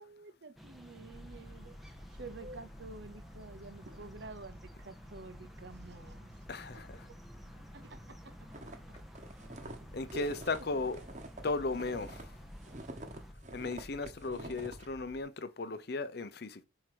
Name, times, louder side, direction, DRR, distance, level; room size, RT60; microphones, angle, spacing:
voice 1, 0.0-6.5 6.7-7.2 7.6-9.0 9.5-10.8 14.3-14.6, right 2 dB, 55° right, 0.8 m, -50 dB
sound 1, 0.6-13.3, equal, ahead, 0.6 m, -54 dB
sound 2, 1.1-15.2, equal, 30° left, 1.1 m, -53 dB
voice 2, 6.5-6.9 9.9-11.0 11.4-12.3 13.5-16.6, left 3 dB, 50° left, 0.6 m, -36 dB
sound 3, 8.5-12.3 12.6-14.9, right 2 dB, 35° right, 1.1 m, -47 dB
4.8 x 4.5 x 6.0 m
head